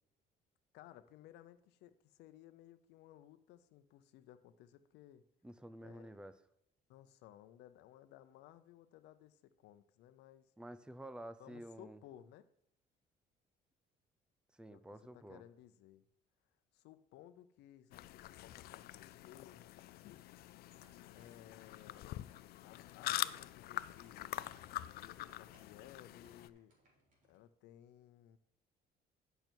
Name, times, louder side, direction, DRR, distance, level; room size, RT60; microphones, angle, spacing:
voice 1, 0.7-5.2 5.8-6.2 6.9-10.5 11.4-12.5 14.7-14.8 15.1-16.0 16.7-19.6 21.1-22.3 22.6-24.6 24.9-26.7 27.3-28.4, left 12 dB, 90° left, 12 dB, 0.8 m, -59 dB
voice 2, 5.4-6.3 10.6-12.0 14.6-15.4, right 1 dB, 5° right, 12 dB, 0.6 m, -50 dB
sound 1, 17.9-26.5, left 14 dB, 65° left, 0.4 m, -45 dB
sound 2, 20.6-27.4, right 1 dB, 50° right, 3.7 m, -72 dB
10.5 x 6.7 x 4.5 m, 0.75 s
cardioid pair, 110°, 17 cm